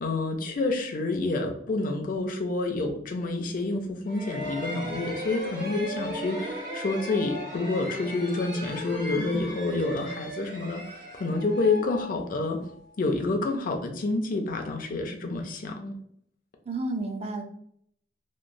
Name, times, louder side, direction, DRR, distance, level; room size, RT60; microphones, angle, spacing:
voice 1, 0.0-10.8 11.1-12.6 13.0-16.0, left 3 dB, 50° left, 4 dB, 0.5 m, -28 dB
sound 1, 4.0-12.7, equal, 50° right, 1.0 m, -36 dB
voice 2, 9.1-9.5 16.7-17.4, right 2 dB, 35° right, 5 dB, 0.4 m, -32 dB
2.9 x 2.0 x 2.5 m, 0.67 s
head